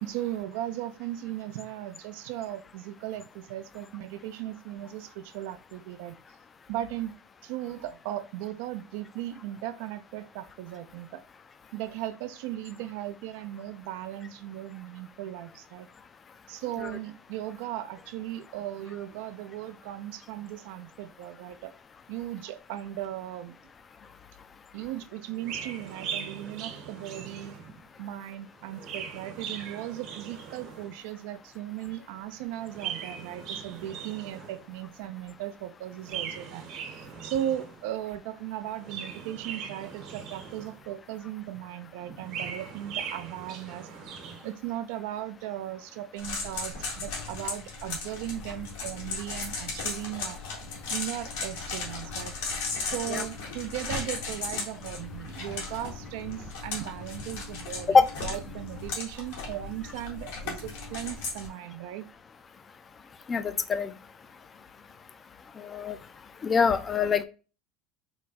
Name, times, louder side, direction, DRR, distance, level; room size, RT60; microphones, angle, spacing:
voice 1, 0.0-6.2 6.7-7.1 7.4-11.2 11.7-15.9 16.5-21.7 22.1-23.6 24.7-27.5 28.0-36.7 37.2-43.9 44.4-50.4 50.9-52.4 52.8-62.0, right 13 dB, 75° right, 0.5 m, -37 dB
Chirp tweet, 25.4-27.9 28.6-31.0 32.5-34.7 36.0-37.9 38.7-40.9 42.0-44.5, right 7 dB, 60° right, 1.1 m, -40 dB
sound 1, 46.2-61.5, left 4 dB, 90° left, 1.6 m, -36 dB
voice 2, 63.3-63.9 65.6-66.0 66.4-67.2, left 5 dB, 25° left, 0.4 m, -24 dB
4.8 x 2.2 x 4.0 m
supercardioid pair, 140°, 0 cm